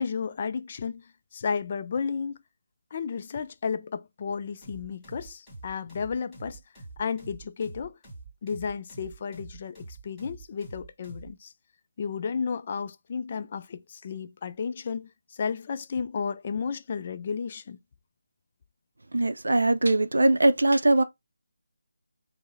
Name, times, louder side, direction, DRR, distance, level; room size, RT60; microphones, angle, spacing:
voice 1, 0.0-2.4 2.9-6.6 7.0-8.0 8.4-11.5 12.0-17.8, left 6 dB, 35° left, 0.3 m, -33 dB
sound 1, 4.6-11.3, right 3 dB, 10° left, 1.6 m, -45 dB
voice 2, 19.1-21.0, right 2 dB, 80° right, 0.4 m, -21 dB
4.4 x 2.1 x 3.1 m
figure-of-eight pair, 165°, 0 cm